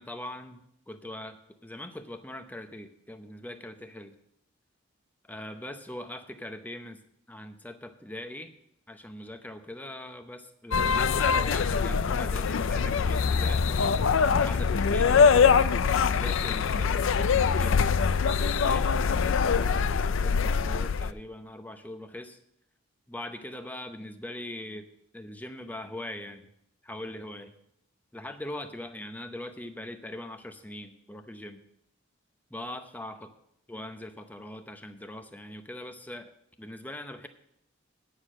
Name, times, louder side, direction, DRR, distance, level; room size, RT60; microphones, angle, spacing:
voice 1, 0.0-1.4 1.6-4.1 5.3-7.0 7.3-8.5 8.9-13.9 14.2-15.4 16.1-18.0 18.4-19.9 20.2-22.4 23.1-24.9 25.1-26.4 26.8-27.5 28.1-31.6 32.5-33.3 33.7-36.3 36.6-37.3, left 1 dB, 10° left, 7 dB, 0.6 m, -41 dB
sound 1, 10.7-21.1, left 5 dB, 70° left, 0.4 m, -23 dB
9.6 x 6.6 x 7.4 m, 0.75 s
head